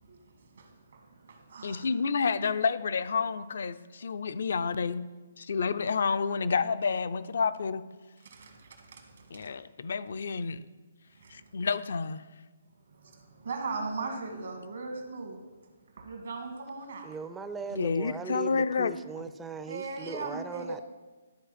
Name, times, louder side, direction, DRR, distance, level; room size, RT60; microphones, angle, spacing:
voice 1, 0.0-1.9 8.2-9.5 11.1-11.5 12.9-15.5 15.9-17.2 19.7-20.8, right 3 dB, 70° right, 5 dB, 1.6 m, -39 dB
voice 2, 1.6-5.1 5.4-7.8 9.3-10.6 11.3-12.2 17.7-18.9, left 5 dB, 65° left, 14 dB, 0.4 m, -29 dB
voice 3, 17.0-20.8, right 5 dB, 10° right, 11 dB, 0.4 m, -39 dB
12.5 x 4.4 x 4.2 m, 1.2 s
hypercardioid pair, 145°, 0 cm